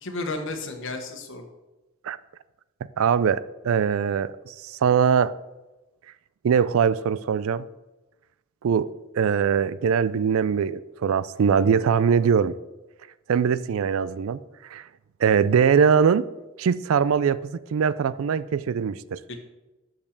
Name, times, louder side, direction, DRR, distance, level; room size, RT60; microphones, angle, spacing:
voice 1, 0.0-1.5 19.3-19.4, left 2 dB, 60° left, 1.3 m, -32 dB
voice 2, 3.0-5.4 6.4-7.6 8.6-12.5 13.3-14.4 14.7-14.8 15.2-16.3 16.6-19.2, right 7 dB, 65° right, 0.3 m, -22 dB
6.6 x 5.8 x 6.6 m
head